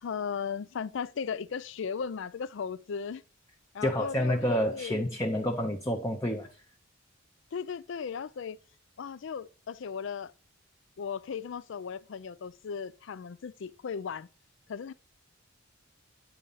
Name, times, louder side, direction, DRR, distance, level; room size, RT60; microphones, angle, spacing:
voice 1, 0.0-3.2 3.7-5.1 7.5-8.6 9.0-10.3 11.0-14.3 14.7-14.9, left 6 dB, 60° left, 0.4 m, -36 dB
voice 2, 3.8-6.5, equal, 15° left, 0.7 m, -29 dB
9.1 x 4.0 x 5.5 m
head